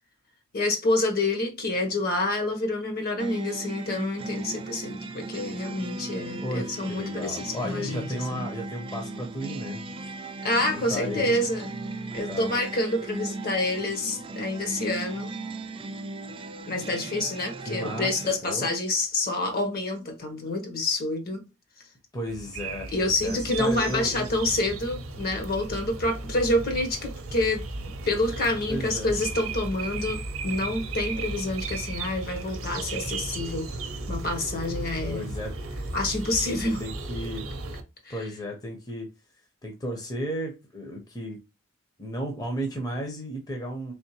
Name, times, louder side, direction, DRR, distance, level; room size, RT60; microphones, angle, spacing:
voice 1, 0.5-8.4 10.4-11.7 12.1-15.3 16.7-21.4 22.9-27.6 28.1-33.7 34.1-35.3 35.9-36.8 38.0-38.3, left 2 dB, 45° left, 1.0 m, -28 dB
sound 1, 3.2-18.4, right 2 dB, 25° right, 0.4 m, -37 dB
voice 2, 6.4-9.9 10.6-11.5 12.3-12.5 17.7-18.7 22.1-24.3 28.7-29.1 35.1-35.5 36.8-37.5 38.1-39.1 39.6-41.4 42.0-43.9, equal, 20° left, 0.7 m, -34 dB
sound 2, 22.3-37.8, right 3 dB, 70° right, 0.7 m, -35 dB
3.5 x 3.5 x 2.9 m
head